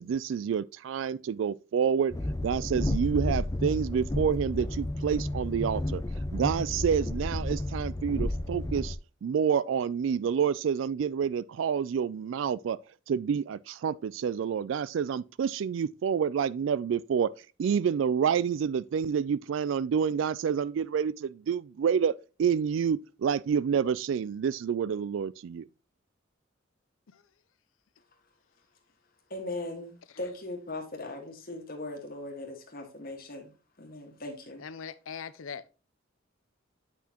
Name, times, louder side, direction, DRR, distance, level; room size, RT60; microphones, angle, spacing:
voice 1, 0.0-2.1 2.4-6.0 6.3-9.0 9.2-12.8 13.1-17.3 17.6-22.1 22.4-25.7, right 7 dB, 65° right, 0.3 m, -28 dB
Train, 2.1-9.0, left 1 dB, 15° left, 0.4 m, -32 dB
voice 2, 29.3-33.5 33.8-34.6, left 2 dB, 45° left, 1.7 m, -39 dB
voice 3, 34.6-35.7, left 6 dB, 80° left, 0.6 m, -41 dB
8.3 x 5.8 x 2.9 m
head